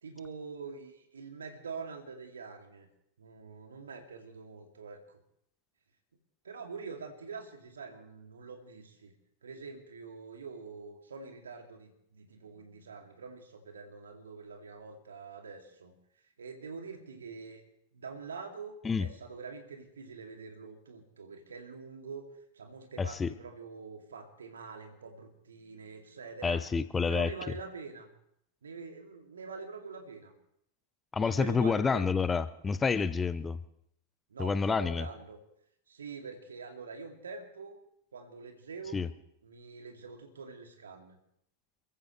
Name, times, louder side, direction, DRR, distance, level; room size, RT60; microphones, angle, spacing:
voice 1, 0.0-2.9 3.2-5.2 6.4-9.1 9.4-15.9 16.4-17.6 17.9-22.2 22.5-26.6 27.1-28.1 28.6-30.3 31.2-32.1 34.3-35.4 35.9-37.8 38.1-39.0 39.4-41.2, right 4 dB, 70° right, 4 dB, 2.3 m, -45 dB
voice 2, 23.0-23.3 26.4-27.3 31.1-33.6 34.4-35.1 38.9-39.1, left 5 dB, 15° left, 14 dB, 0.6 m, -28 dB
27.5 x 14.5 x 3.2 m, 0.73 s
figure-of-eight pair, 90°, 0 cm